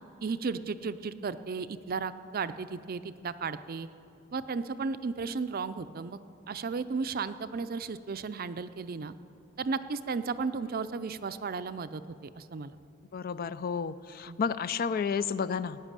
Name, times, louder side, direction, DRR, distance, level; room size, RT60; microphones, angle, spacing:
voice 1, 0.2-3.9 4.3-6.2 6.5-9.1 9.6-12.8 14.3-14.4, right 4 dB, 50° right, 12 dB, 0.5 m, -34 dB
voice 2, 13.1-15.8, left 6 dB, 50° left, 15 dB, 0.4 m, -31 dB
17.0 x 9.6 x 7.5 m, 2.8 s
head